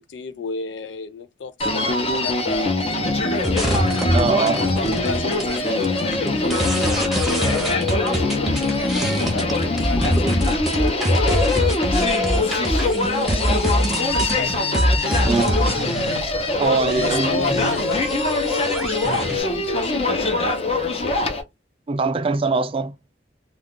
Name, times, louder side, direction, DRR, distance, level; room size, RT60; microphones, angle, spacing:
voice 1, 0.1-4.0 4.5-10.2 10.8-14.8 16.8-21.4, left 5 dB, 90° left, 0.4 m, -33 dB
Human voice, 1.6-21.4, left 2 dB, 35° left, 0.7 m, -23 dB
sound 1, 3.4-16.2 16.6-19.4, equal, ahead, 0.8 m, -24 dB
voice 2, 4.1-4.7 15.2-15.6 16.6-17.5 21.9-22.9, right 4 dB, 30° right, 0.3 m, -22 dB
2.3 x 2.3 x 3.7 m
head